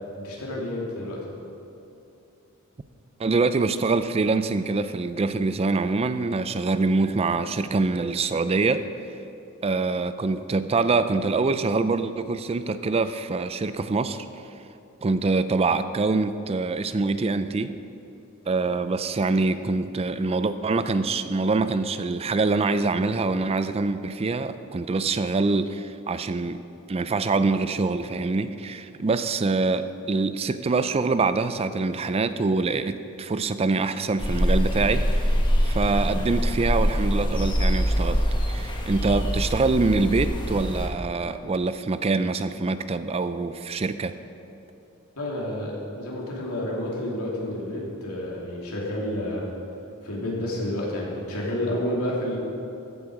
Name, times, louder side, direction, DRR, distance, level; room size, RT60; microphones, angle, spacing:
voice 1, 0.2-1.2 45.2-49.5 50.0-52.4, left 1 dB, 90° left, -4 dB, 2.9 m, -30 dB
voice 2, 3.2-8.9 9.6-14.3 15.0-17.7 18.5-26.6 26.9-35.3 35.6-44.1, right 3 dB, 30° right, 12 dB, 0.4 m, -25 dB
sound 1, 34.2-40.9, equal, 20° left, 1.4 m, -24 dB
15.0 x 8.4 x 4.8 m, 2.8 s
head